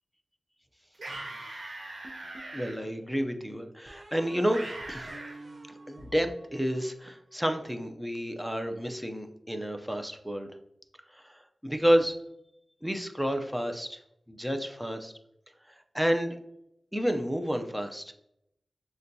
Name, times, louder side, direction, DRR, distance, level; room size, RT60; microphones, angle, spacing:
sound 1, 0.9-2.7 4.5-5.4, right 2 dB, 90° right, 1.1 m, -40 dB
sound 2, 2.0-2.9 3.9-7.2, right 2 dB, 60° right, 0.6 m, -49 dB
voice 1, 2.5-5.1 5.9-10.5 11.1-12.1 12.8-14.0 14.3-15.1 15.9-16.4 16.9-18.1, equal, 5° right, 6 dB, 0.4 m, -30 dB
6.5 x 2.2 x 2.7 m, 0.79 s
wide cardioid pair, 85°, 0 cm